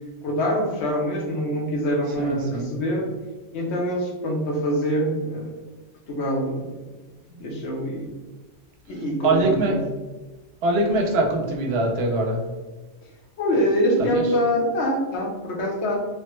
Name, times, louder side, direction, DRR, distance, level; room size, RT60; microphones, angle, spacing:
voice 1, 0.2-3.1 3.5-5.5 6.1-6.8 7.3-8.1 8.9-9.8 13.4-16.1, equal, 75° left, -1 dB, 1.0 m, -24 dB
voice 2, 2.2-2.7 9.2-9.8 10.6-12.4 14.1-14.2, right 2 dB, 70° right, 1 dB, 0.8 m, -22 dB
3.2 x 2.1 x 3.0 m, 1.2 s
omnidirectional pair, 1.2 m